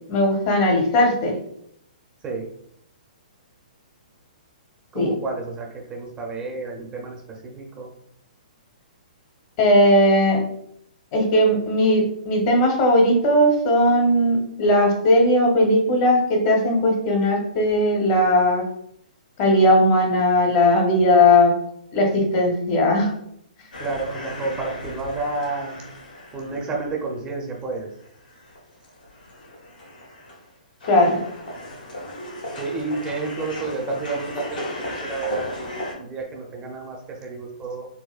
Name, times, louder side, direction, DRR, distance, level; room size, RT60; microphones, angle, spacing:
voice 1, 0.1-1.4 4.9-5.1 9.6-10.4 11.1-18.6 19.4-21.5 21.9-23.1 30.9-31.2, left 1 dB, 40° left, 2 dB, 0.9 m, -18 dB
voice 2, 4.9-7.9 23.8-25.8 26.3-27.9 32.6-37.9, right 3 dB, 20° right, 0 dB, 0.6 m, -30 dB
sound 1, 23.7-27.1 27.6-27.7 28.0-30.5 30.8-35.9, left 1 dB, 75° left, 1.1 m, -36 dB
4.0 x 2.1 x 2.4 m, 0.72 s
hypercardioid pair, 130°, 5 cm